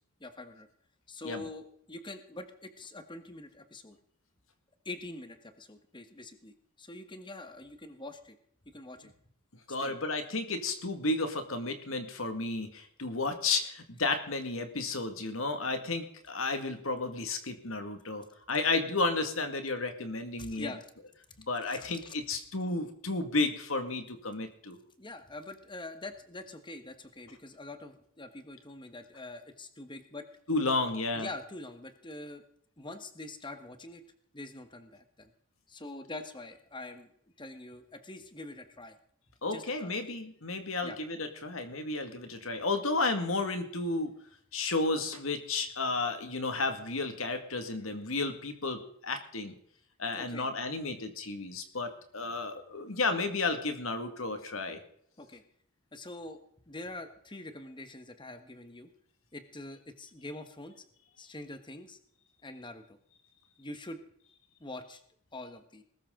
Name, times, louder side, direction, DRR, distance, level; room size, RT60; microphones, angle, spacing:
voice 1, 0.2-0.7 1.1-4.0 4.8-8.4 8.6-9.1 9.8-9.9 20.4-20.8 22.0-22.1 25.0-30.3 31.1-32.4 32.8-34.0 34.3-35.3 35.7-37.1 37.4-39.0 39.5-39.9 40.8-41.0 50.1-50.5 55.2-55.4 55.9-56.4 56.7-58.9 59.3-60.8 61.2-62.0 62.4-63.0 63.6-64.0 64.6-65.0 65.3-65.8, left 2 dB, 20° left, 9 dB, 1.4 m, -44 dB
voice 2, 9.7-20.7 21.5-24.8 30.5-31.3 39.4-44.1 44.5-49.5 50.0-54.8, left 3 dB, 70° left, 7 dB, 2.0 m, -32 dB
20.5 x 13.5 x 3.8 m, 0.66 s
head